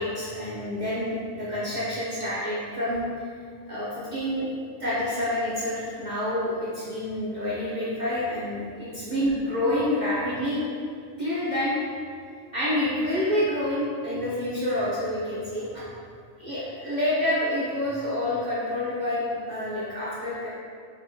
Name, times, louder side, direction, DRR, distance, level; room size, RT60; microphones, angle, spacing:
voice 1, 0.0-3.1 3.7-4.5 4.8-10.6 11.2-11.8 12.5-15.8 16.4-20.5, left 1 dB, 55° right, -9 dB, 0.5 m, -28 dB
3.4 x 2.0 x 3.1 m, 2.2 s
omnidirectional pair, 1.4 m